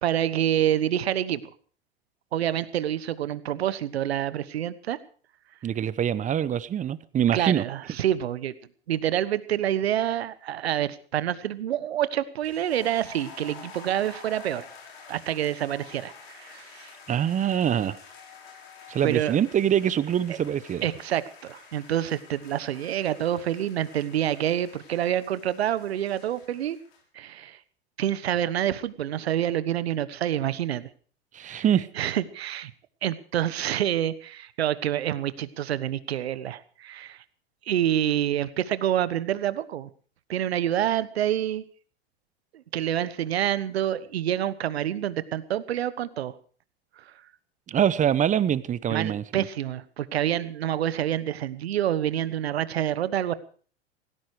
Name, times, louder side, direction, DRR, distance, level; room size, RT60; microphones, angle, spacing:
voice 1, 0.0-1.4 2.3-5.0 7.3-8.5 8.9-14.6 15.1-16.9 19.0-19.4 20.8-26.8 27.1-27.6 28.0-30.9 31.5-31.6 32.0-32.7 33.0-37.2 37.7-39.9 40.3-41.6 42.5-46.3 47.0-47.1 48.9-53.3, right 11 dB, 75° right, 16 dB, 1.3 m, -27 dB
voice 2, 5.6-7.6 17.1-18.0 18.9-20.9 31.3-31.9 47.7-49.4, right 9 dB, 25° right, 18 dB, 0.9 m, -24 dB
sound 1, 12.4-27.0, left 5 dB, 70° left, 6.6 m, -49 dB
17.5 x 16.0 x 4.8 m, 0.43 s
hypercardioid pair, 100°, 31 cm